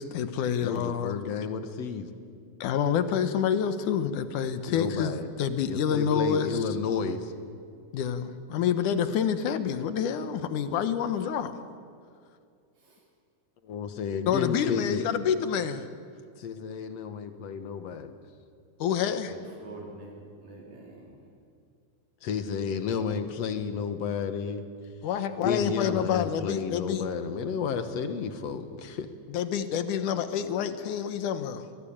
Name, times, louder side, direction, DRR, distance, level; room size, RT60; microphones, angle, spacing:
voice 1, 0.0-1.2 2.6-6.6 7.9-11.6 14.3-15.9 18.8-19.4 25.0-27.1 29.3-31.7, left 8 dB, 85° left, 11 dB, 2.7 m, -28 dB
voice 2, 0.6-2.1 4.7-5.3 5.7-7.3 13.6-15.1 16.4-18.1 22.2-24.6 25.4-29.1, left 6 dB, 65° left, 9 dB, 2.3 m, -31 dB
voice 3, 19.3-21.2, right 2 dB, 65° right, -2 dB, 5.0 m, -45 dB
25.0 x 19.5 x 8.8 m, 2.3 s
omnidirectional pair, 3.5 m